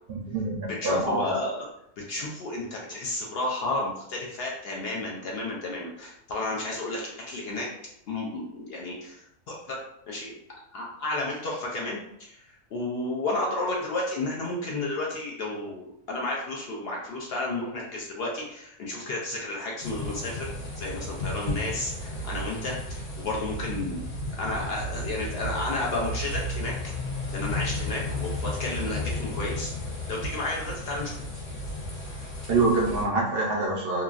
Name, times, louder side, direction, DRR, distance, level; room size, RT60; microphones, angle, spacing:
voice 1, 0.1-1.3 32.5-34.0, right 2 dB, 65° right, -1 dB, 0.6 m, -25 dB
voice 2, 0.8-1.6 2.0-7.7 8.1-9.8 10.1-10.3 10.7-20.5 20.8-24.0 24.4-26.7 27.3-29.7 30.1-31.2, left 2 dB, 65° left, -3 dB, 0.6 m, -32 dB
sound 1, 19.8-33.0, left 1 dB, 90° left, 1.4 m, -33 dB
2.9 x 2.4 x 2.3 m, 0.78 s
omnidirectional pair, 1.5 m